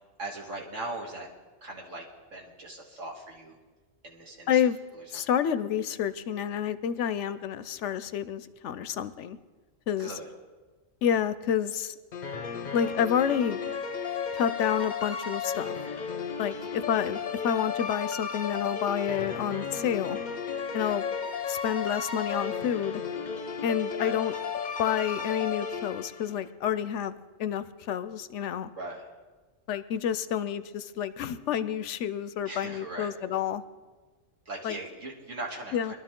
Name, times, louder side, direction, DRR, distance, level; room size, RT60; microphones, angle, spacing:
voice 1, 0.2-1.3 1.6-2.0 2.3-3.6 4.0-4.6 4.9-5.3 10.0-10.3 16.5-16.8 20.8-21.0 24.0-24.1 28.7-29.0 32.5-33.1 34.5-35.9, right 2 dB, 75° right, -1 dB, 2.5 m, -40 dB
voice 2, 5.1-9.4 9.9-10.1 11.0-12.0 12.7-13.6 14.3-15.8 16.4-17.2 17.4-20.2 20.7-21.0 21.5-23.0 23.6-24.3 24.8-28.7 29.7-33.6 34.6-34.8 35.7-35.9, left 9 dB, 70° left, 13 dB, 0.9 m, -29 dB
sound 1, 12.1-26.4, left 6 dB, 45° left, 0.7 m, -34 dB
22.0 x 12.0 x 3.7 m, 1.3 s
omnidirectional pair, 1.3 m